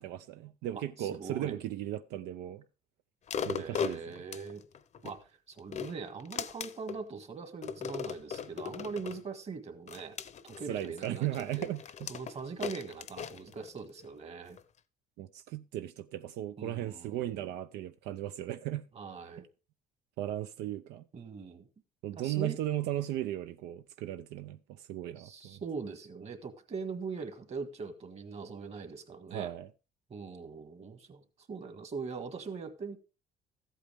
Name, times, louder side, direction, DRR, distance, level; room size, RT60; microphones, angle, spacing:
voice 1, 0.0-2.6 3.5-4.0 10.7-12.1 15.2-18.8 20.2-21.0 22.0-25.6 29.3-29.7, right 13 dB, 85° right, 0.6 m, -36 dB
voice 2, 0.7-1.6 3.6-4.6 5.0-10.1 10.4-11.7 12.1-14.6 16.6-17.5 18.9-19.4 21.1-21.7 22.1-22.6 25.2-29.5 30.1-31.2 31.5-33.0, right 5 dB, 40° right, 1.7 m, -41 dB
sound 1, 3.3-5.2 5.6-7.0 7.6-9.2 9.9-14.1 14.6-14.7, left 7 dB, 45° left, 0.7 m, -38 dB
13.5 x 8.3 x 3.5 m
cardioid pair, 110°, 17 cm